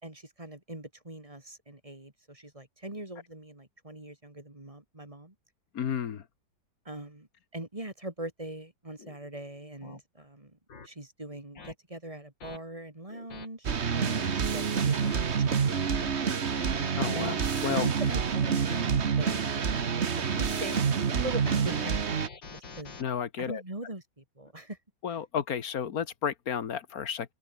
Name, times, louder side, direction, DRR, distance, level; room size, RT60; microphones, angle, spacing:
voice 1, 0.0-5.3 6.8-10.6 10.8-16.4 17.1-22.9 23.4-24.8, right 1 dB, 20° right, 2.8 m, -42 dB
voice 2, 5.7-6.2 16.9-17.3 17.6-17.9 18.7-18.8 23.0-23.6 25.0-27.3, left 8 dB, 60° left, 1.5 m, -32 dB
sound 1, 9.0-9.2 9.8-10.0 10.7-10.9 11.6-11.7 12.4-12.6 13.1-13.5 14.0-14.3 14.8-15.2 15.7-16.1 16.5-16.9 17.4-18.2 18.8-19.5 20.2-20.8 21.2-23.0, left 4 dB, 85° left, 3.8 m, -46 dB
sound 2, 13.6-22.3, right 6 dB, 40° right, 1.4 m, -28 dB
omnidirectional pair, 1.9 m